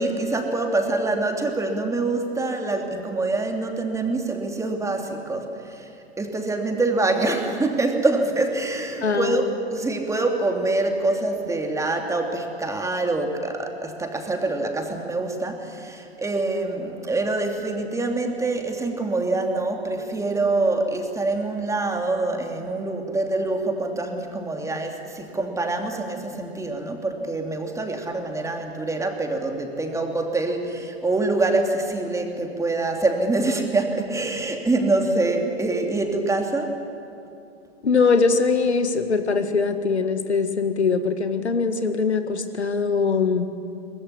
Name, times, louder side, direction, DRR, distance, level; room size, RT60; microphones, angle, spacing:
voice 1, 0.0-5.9 6.2-36.8, right 2 dB, 10° right, 3 dB, 2.8 m, -25 dB
voice 2, 9.0-9.5 37.8-43.5, left 4 dB, 85° left, 8 dB, 1.9 m, -22 dB
23.5 x 19.5 x 9.8 m, 2.6 s
hypercardioid pair, 110°, 32 cm